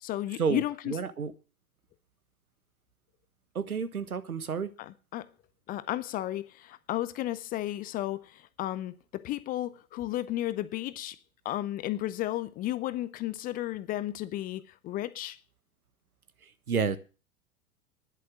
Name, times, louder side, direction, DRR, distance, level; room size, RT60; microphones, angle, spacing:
voice 1, 0.0-1.0 4.8-5.3 5.7-11.2 11.4-15.4, left 14 dB, 20° left, 0.6 m, -33 dB
voice 2, 0.9-1.3 3.5-4.7 16.7-17.0, right 6 dB, 75° right, 1.4 m, -30 dB
11.0 x 11.0 x 6.1 m
figure-of-eight pair, 100°, 44 cm